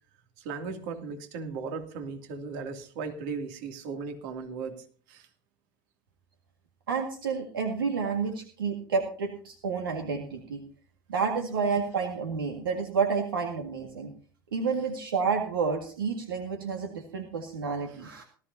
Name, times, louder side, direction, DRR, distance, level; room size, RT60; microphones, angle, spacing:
voice 1, 0.4-5.3, right 4 dB, 65° right, 6 dB, 2.6 m, -37 dB
voice 2, 6.9-10.6 11.1-14.1 14.5-18.2, right 5 dB, 85° right, 4 dB, 1.9 m, -30 dB
19.0 x 14.0 x 2.8 m, 0.43 s
hypercardioid pair, 80°, 11 cm